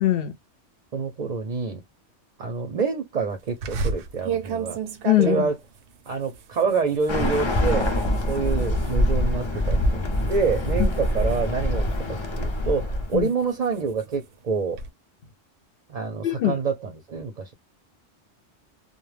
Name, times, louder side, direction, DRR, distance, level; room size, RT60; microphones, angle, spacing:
voice 1, 0.0-0.3 5.0-5.5 10.8-10.9 13.1-13.3 16.2-16.5, left 14 dB, 60° left, 0.8 m, -21 dB
voice 2, 0.9-1.8 2.4-4.8 5.2-5.6 6.1-7.9 8.3-14.8 15.9-17.5, right 5 dB, 45° right, 0.6 m, -27 dB
sound 1, 3.6-9.0 9.4-9.8 10.1-12.2 12.7-14.9, right 5 dB, 75° right, 0.8 m, -34 dB
Bird, 7.1-13.2, left 1 dB, 35° left, 0.5 m, -24 dB
2.3 x 2.2 x 3.2 m
omnidirectional pair, 1.2 m